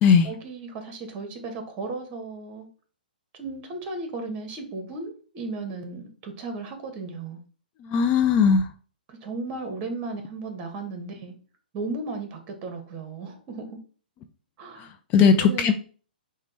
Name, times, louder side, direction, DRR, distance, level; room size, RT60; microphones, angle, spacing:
voice 1, 0.2-2.7 3.3-7.4 9.1-11.3 11.7-13.8 14.6-14.9 15.2-15.7, right 3 dB, 30° right, 6 dB, 1.2 m, -35 dB
voice 2, 7.8-8.7 14.8-15.7, left 6 dB, 30° left, 7 dB, 0.4 m, -19 dB
5.0 x 2.3 x 4.3 m, 0.40 s
hypercardioid pair, 125°, 5 cm